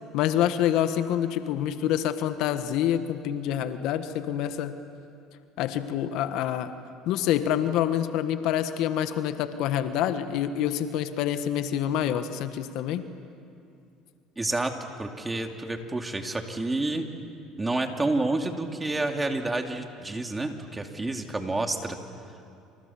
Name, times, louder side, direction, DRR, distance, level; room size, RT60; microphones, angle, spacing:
voice 1, 0.1-4.7 5.6-6.7 7.0-13.0, left 10 dB, 70° left, 10 dB, 1.4 m, -27 dB
voice 2, 14.4-14.7 15.0-17.1 17.6-22.0, right 2 dB, 15° right, 4 dB, 2.7 m, -29 dB
28.5 x 27.5 x 7.2 m, 2.6 s
supercardioid pair, 90°, 0 cm